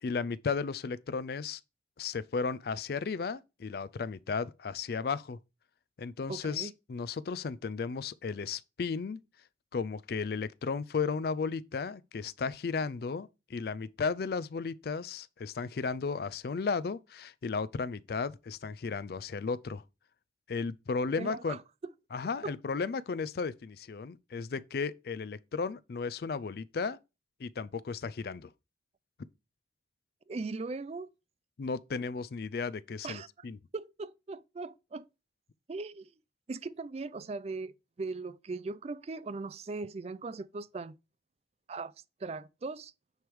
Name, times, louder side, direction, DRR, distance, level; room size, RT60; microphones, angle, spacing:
voice 1, 0.0-1.6 2.0-5.4 6.0-9.2 9.7-19.8 20.5-21.6 22.1-27.0 27.4-28.5 31.6-33.6, left 5 dB, 55° left, 0.4 m, -34 dB
voice 2, 6.3-6.7 21.2-21.6 22.4-22.5 30.3-31.1 33.0-33.3 33.7-35.0 35.7-36.1 36.5-40.9 41.7-41.9 42.2-42.9, right 3 dB, 35° right, 0.4 m, -39 dB
9.3 x 3.4 x 4.7 m
head